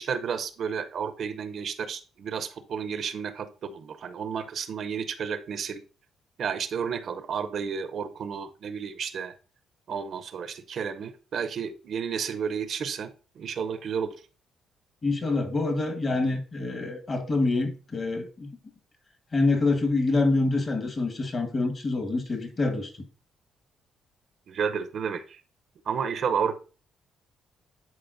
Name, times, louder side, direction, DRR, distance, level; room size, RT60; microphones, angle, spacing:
voice 1, 0.0-5.8 6.4-9.3 9.9-13.1 13.4-14.1 24.5-25.4 25.9-26.6, right 6 dB, 60° right, 0.6 m, -31 dB
voice 2, 15.0-18.5 19.3-22.9, left 3 dB, 40° left, 1.4 m, -26 dB
10.5 x 4.1 x 2.6 m
cardioid pair, 90°, 0 cm